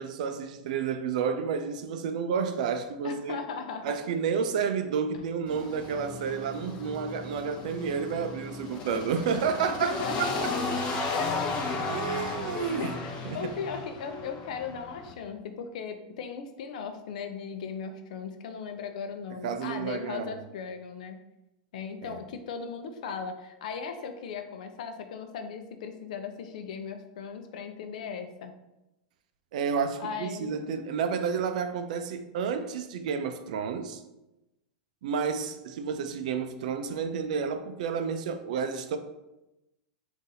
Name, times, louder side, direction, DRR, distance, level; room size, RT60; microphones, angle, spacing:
voice 1, 0.0-3.4 3.8-10.5 11.9-12.9 13.3-13.5 19.4-20.4 22.0-22.2 29.5-34.0 35.0-39.0, right 6 dB, 70° right, 0.5 m, -30 dB
voice 2, 3.0-4.0 9.6-10.7 11.1-11.6 12.1-21.2 21.7-28.5 30.0-30.6, left 6 dB, 70° left, 0.6 m, -37 dB
sound 1, 5.5-15.1, left 3 dB, 30° left, 0.8 m, -35 dB
3.9 x 2.6 x 4.0 m
supercardioid pair, 145°, 4 cm